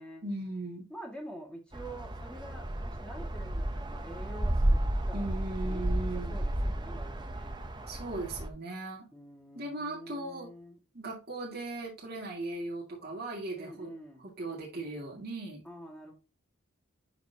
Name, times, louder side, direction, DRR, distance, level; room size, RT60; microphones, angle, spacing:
voice 1, 0.2-0.9 5.1-6.4 7.9-9.1 9.6-10.5 10.9-13.9 14.4-15.6, right 2 dB, 50° right, -3 dB, 2.1 m, -38 dB
voice 2, 0.9-5.3 5.6-7.6 9.1-10.8 13.6-14.3 15.6-16.1, right 1 dB, 5° left, -1 dB, 1.7 m, -47 dB
sound 1, 1.7-8.5, right 1 dB, 20° right, 0.7 m, -32 dB
11.5 x 4.1 x 2.8 m, 0.31 s
head